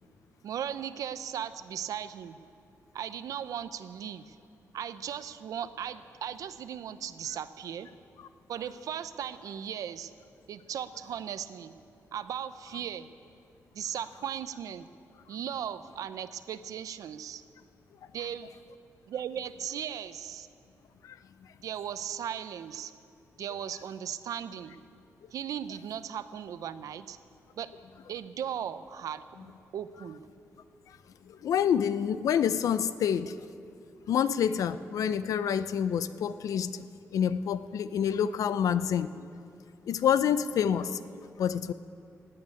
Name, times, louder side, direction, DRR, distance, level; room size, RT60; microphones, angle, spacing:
voice 1, 0.4-2.4 2.9-4.4 4.7-7.9 8.5-10.1 10.5-11.7 12.1-13.1 13.7-14.9 15.3-17.4 18.1-18.5 19.1-20.5 21.6-22.9 23.4-24.8 25.3-27.2 27.6-27.7 28.1-30.2, right 9 dB, 80° right, 12 dB, 0.7 m, -37 dB
voice 2, 31.3-33.3 34.1-39.3 39.9-41.7, left 8 dB, 80° left, 14 dB, 0.5 m, -28 dB
16.0 x 8.7 x 9.8 m, 2.4 s
wide cardioid pair, 130°, 6 cm